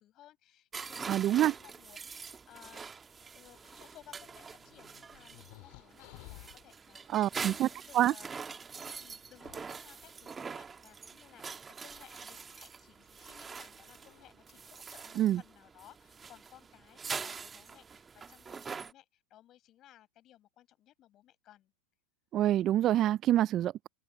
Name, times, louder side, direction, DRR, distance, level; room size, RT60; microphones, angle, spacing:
voice 1, 0.0-3.1 3.3-8.4 9.0-21.7, left 13 dB, 40° left, 7.9 m, -59 dB
sound 1, 0.7-18.9, right 5 dB, 20° right, 1.6 m, -44 dB
voice 2, 1.1-1.5 7.1-7.7 7.9-8.1 15.2-15.4 22.3-23.9, right 12 dB, 35° right, 0.3 m, -26 dB
sound 2, 3.5-6.7 8.0-8.1 9.1-11.0 12.1-12.6 13.5-13.6 14.0-14.3, left 28 dB, 60° left, 2.1 m, -56 dB
open air
hypercardioid pair, 120°, 0 cm